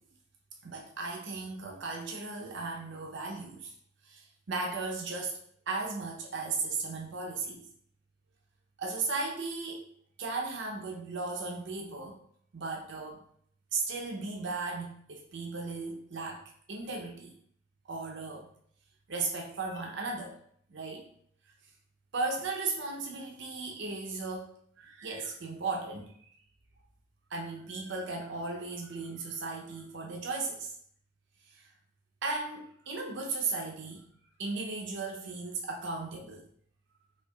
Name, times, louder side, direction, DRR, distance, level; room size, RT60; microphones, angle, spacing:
voice 1, 0.6-3.7 4.0-7.7 8.8-9.9 10.2-12.2 12.5-13.2 13.7-16.4 16.7-17.3 17.9-18.5 19.1-20.3 20.7-21.1 22.1-24.5 24.8-26.1 27.3-30.7 31.5-31.7 32.2-34.1 34.4-36.5, right 3 dB, 60° right, 0 dB, 0.6 m, -36 dB
4.4 x 2.7 x 2.3 m, 0.63 s
head